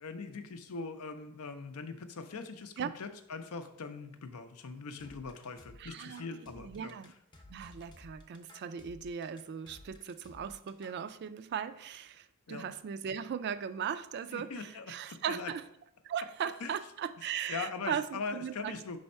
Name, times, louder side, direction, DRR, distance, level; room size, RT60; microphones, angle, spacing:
voice 1, 0.0-6.9 12.5-12.7 14.3-15.5 16.6-16.7 17.2-19.0, left 4 dB, 85° left, 8 dB, 0.6 m, -41 dB
sound 1, 5.0-11.0, left 1 dB, 20° left, 0.6 m, -55 dB
voice 2, 5.8-7.1 7.5-15.6 16.0-19.0, right 8 dB, 50° right, 12 dB, 0.3 m, -38 dB
5.3 x 3.4 x 5.3 m, 0.78 s
head